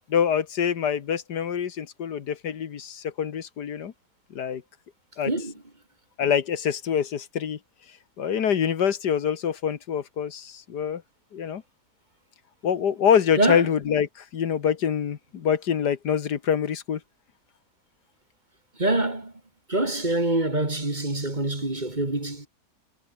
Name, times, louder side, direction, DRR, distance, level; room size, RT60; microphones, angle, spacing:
voice 1, 0.1-3.9 4.3-4.6 5.2-5.3 6.2-7.6 8.2-11.0 11.3-11.6 12.6-17.0, left 8 dB, 80° left, 1.9 m, -25 dB
voice 2, 13.4-13.7 18.8-19.3 19.7-22.5, right 2 dB, 25° right, 2.9 m, -25 dB
omnidirectional pair, 1.8 m